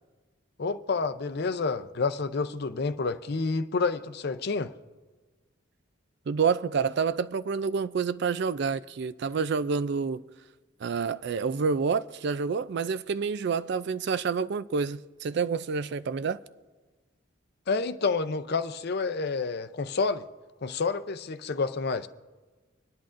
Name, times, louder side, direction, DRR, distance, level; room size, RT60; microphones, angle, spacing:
voice 1, 0.6-4.7 17.7-20.2 20.6-22.1, left 4 dB, 55° left, 0.5 m, -29 dB
voice 2, 6.3-10.2 10.8-16.4, right 5 dB, 60° right, 0.4 m, -28 dB
26.0 x 10.5 x 2.5 m
head